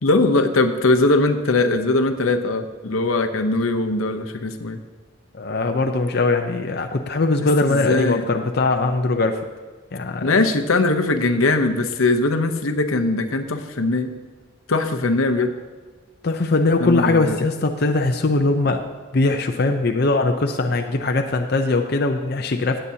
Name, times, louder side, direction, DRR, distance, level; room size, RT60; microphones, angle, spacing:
voice 1, 0.0-4.8 7.6-8.2 10.2-14.1 14.7-15.5 16.8-17.4, left 2 dB, 85° left, 6 dB, 0.8 m, -20 dB
voice 2, 5.3-9.4 9.9-10.4 16.2-18.9 19.1-22.8, left 3 dB, 50° left, 4 dB, 0.6 m, -21 dB
16.5 x 8.9 x 2.8 m, 1.4 s
head